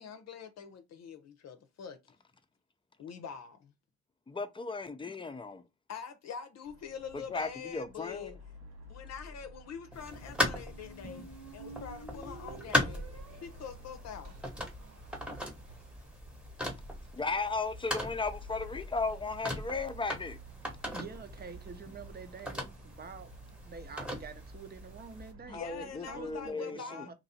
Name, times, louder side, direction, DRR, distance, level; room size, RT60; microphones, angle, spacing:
voice 1, 0.0-2.1 3.0-3.7 5.9-8.4 8.9-11.3 11.5-14.3 25.5-27.1, left 7 dB, 60° left, 0.7 m, -45 dB
voice 2, 4.3-5.6 7.3-8.4 17.1-20.4 25.5-27.0, left 3 dB, 15° left, 0.6 m, -35 dB
sound 1, 6.6-26.5, right 1 dB, 90° right, 1.7 m, -53 dB
sound 2, 9.9-25.3, left 1 dB, 5° right, 1.0 m, -39 dB
Squeak, 10.0-15.9, right 2 dB, 75° right, 1.6 m, -52 dB
voice 3, 20.9-23.3 23.6-27.1, right 5 dB, 30° right, 0.8 m, -47 dB
3.0 x 2.6 x 4.2 m
cardioid pair, 90°, 30 cm